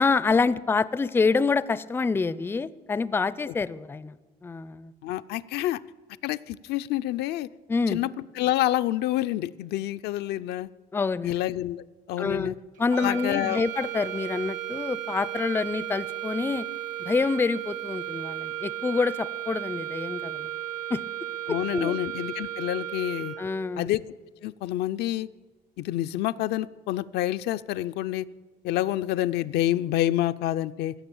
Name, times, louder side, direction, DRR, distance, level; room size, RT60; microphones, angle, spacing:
voice 1, 0.0-4.2 4.4-4.9 7.7-8.0 10.9-11.3 12.2-16.7 17.0-20.5 20.9-21.0 21.7-22.0 23.4-23.9, left 4 dB, 15° left, 17 dB, 0.4 m, -27 dB
voice 2, 5.0-5.8 6.2-7.5 7.9-8.1 8.4-10.7 11.2-12.6 12.9-13.6 21.5-23.3 23.8-24.0 24.4-25.3 25.8-28.3 28.6-30.9, left 14 dB, 80° left, 11 dB, 0.4 m, -28 dB
sound 1, 12.8-23.7, right 12 dB, 50° right, 1.0 m, -35 dB
16.0 x 6.7 x 7.0 m, 1.3 s
cardioid pair, 110°, 17 cm